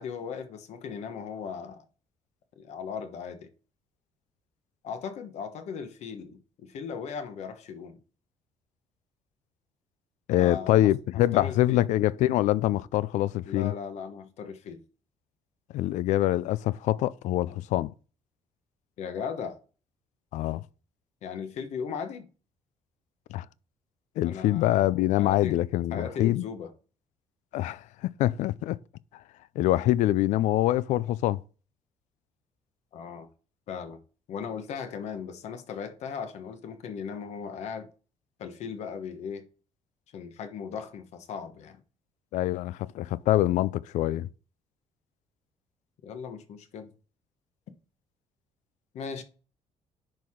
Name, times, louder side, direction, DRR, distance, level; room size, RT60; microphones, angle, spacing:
voice 1, 0.0-1.8 2.6-3.5 4.8-8.0 10.4-10.9 11.3-11.9 13.5-14.8 19.0-19.6 21.2-22.3 24.2-24.9 25.2-25.6 25.9-26.7 32.9-33.3 33.7-34.0 34.3-37.9 38.4-39.5 40.1-41.8 46.0-46.9 48.9-49.2, left 6 dB, 65° left, 1.2 m, -37 dB
voice 2, 10.3-13.7 15.7-17.9 20.3-20.6 23.3-23.5 24.2-26.4 27.5-28.8 29.6-31.4 42.3-44.3, left 15 dB, 85° left, 0.4 m, -25 dB
10.5 x 4.7 x 3.7 m
cardioid pair, 135°, 12 cm